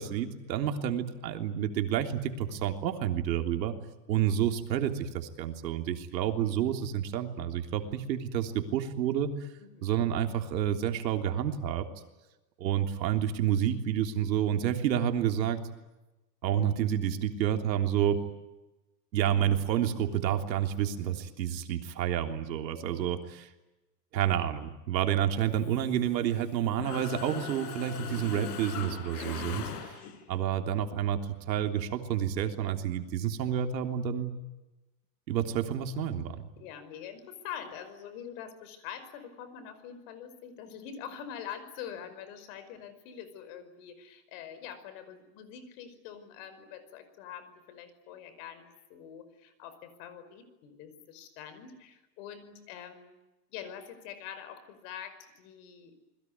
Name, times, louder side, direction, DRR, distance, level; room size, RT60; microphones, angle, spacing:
voice 1, 0.0-3.8 4.1-9.3 9.8-11.9 12.6-15.6 16.4-18.2 19.1-23.5 24.1-30.0 30.3-34.3 35.3-36.5, right 10 dB, 85° right, 5 dB, 3.5 m, -29 dB
voice 2, 9.6-9.9 30.0-30.5 36.6-53.2 53.5-56.0, left 8 dB, 50° left, 12 dB, 5.3 m, -45 dB
Mechanisms, 25.6-26.5 26.8-30.3, left 7 dB, 65° left, 6.0 m, -40 dB
28.5 x 21.5 x 9.5 m, 1.0 s
supercardioid pair, 160°, 50 cm